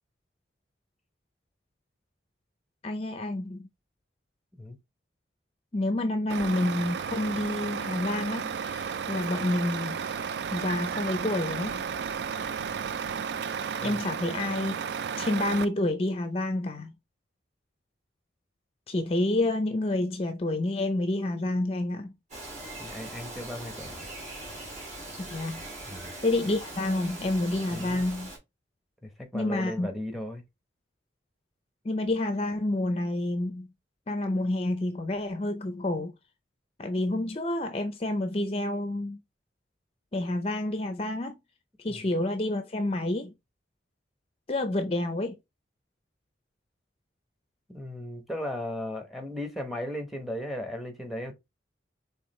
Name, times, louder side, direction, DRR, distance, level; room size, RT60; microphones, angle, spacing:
voice 1, 2.8-3.7 5.7-10.1 10.5-11.8 12.4-12.6 13.8-14.8 15.2-16.9 18.9-22.1 25.2-25.6 26.2-28.3 29.3-29.9 31.8-33.7 34.1-36.1 36.8-39.2 40.1-41.4 41.8-43.3 44.5-45.4, left 1 dB, 30° left, 0.5 m, -29 dB
Truck, 6.3-15.7, right 6 dB, 65° right, 0.3 m, -33 dB
Bird vocalization bird call bird song, 22.3-28.4, right 1 dB, 40° right, 2.6 m, -41 dB
voice 2, 22.8-24.1 25.8-26.1 27.7-28.1 29.0-30.4 41.9-42.0 47.7-51.3, left 1 dB, ahead, 0.8 m, -36 dB
4.8 x 3.4 x 3.1 m
head